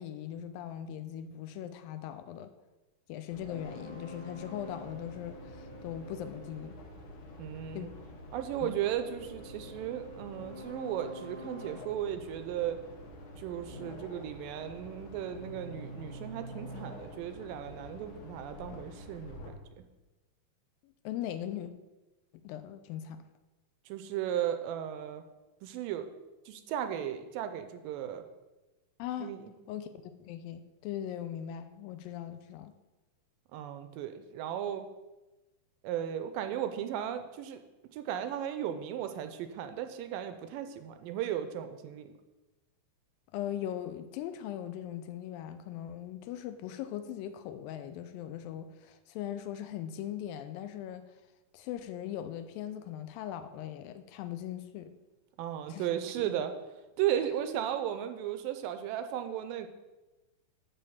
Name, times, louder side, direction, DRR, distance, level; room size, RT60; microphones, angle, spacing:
voice 1, 0.0-2.5 3.1-6.8 7.7-7.9 8.6-8.8 20.8-21.7 22.3-23.2 29.0-29.3 29.7-29.9 30.2-32.7 43.3-51.0 51.5-54.9 55.7-55.8 56.2-56.3 57.1-57.2, left 10 dB, 80° left, 10 dB, 2.2 m, -40 dB
sound 1, 3.3-19.5, equal, 65° left, 2.4 m, -46 dB
voice 2, 7.4-7.9 8.3-12.8 13.4-19.5 23.9-25.2 25.6-26.1 26.5-28.2 29.2-29.4 33.5-34.9 35.8-37.6 37.9-42.1 55.4-56.5 57.0-59.7, right 10 dB, 80° right, 8 dB, 2.1 m, -35 dB
10.0 x 3.4 x 7.1 m, 1.1 s
omnidirectional pair, 4.2 m